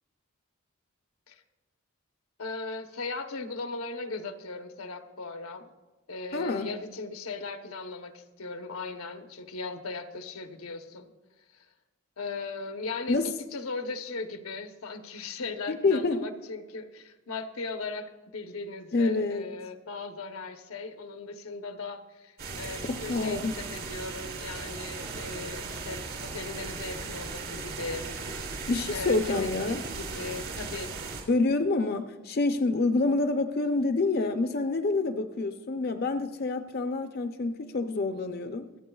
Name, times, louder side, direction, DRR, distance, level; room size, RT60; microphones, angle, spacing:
voice 1, 2.4-5.7 6.1-11.1 12.2-13.2 13.5-28.6 28.9-30.9, left 3 dB, 85° left, 7 dB, 0.9 m, -38 dB
voice 2, 6.3-6.7 13.1-13.3 15.7-16.2 18.9-19.4 22.9-23.5 28.7-29.8 31.3-38.7, left 3 dB, 45° left, 7 dB, 0.5 m, -27 dB
sound 1, 22.4-31.2, right 4 dB, 70° right, 3.2 m, -37 dB
26.0 x 8.7 x 2.3 m, 1.2 s
head